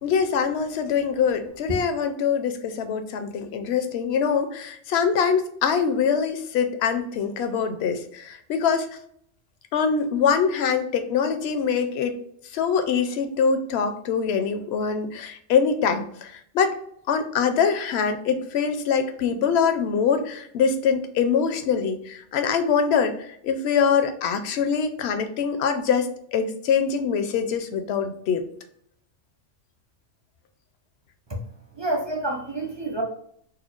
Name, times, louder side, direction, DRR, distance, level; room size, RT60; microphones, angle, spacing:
voice 1, 0.0-8.9 9.7-12.2 12.5-16.8 17.1-28.4, left 6 dB, 65° left, 8 dB, 0.7 m, -24 dB
voice 2, 31.8-33.0, right 2 dB, 40° right, 0 dB, 0.3 m, -28 dB
4.4 x 2.2 x 2.4 m, 0.67 s
omnidirectional pair, 1.3 m